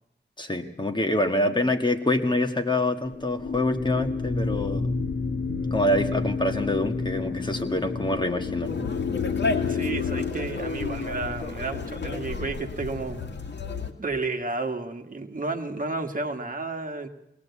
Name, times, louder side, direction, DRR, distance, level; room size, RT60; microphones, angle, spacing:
voice 1, 0.4-4.9 5.7-8.7, left 1 dB, 25° left, 5 dB, 1.7 m, -26 dB
sound 1, 3.0-10.3, left 4 dB, 85° left, 2.6 m, -29 dB
Conversation, 8.6-13.9, left 3 dB, 65° left, 2.2 m, -32 dB
voice 2, 9.7-13.2 14.0-17.1, right 3 dB, 45° right, 6 dB, 1.7 m, -31 dB
22.5 x 18.0 x 8.4 m, 0.83 s
wide cardioid pair, 100°, 19 cm